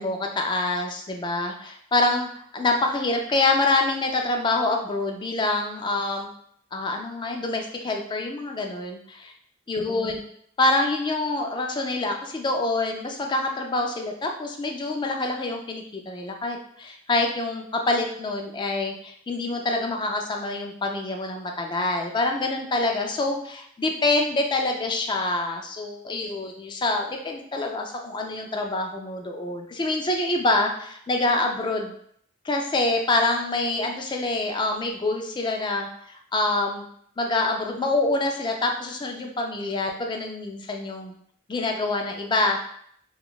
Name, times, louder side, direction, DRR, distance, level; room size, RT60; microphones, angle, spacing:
voice 1, 0.0-6.3 6.7-9.3 9.7-10.2 10.6-31.9 32.4-36.9 37.2-41.1 41.5-42.6, left 2 dB, 25° left, 3 dB, 0.4 m, -26 dB
3.6 x 2.3 x 2.3 m, 0.65 s
head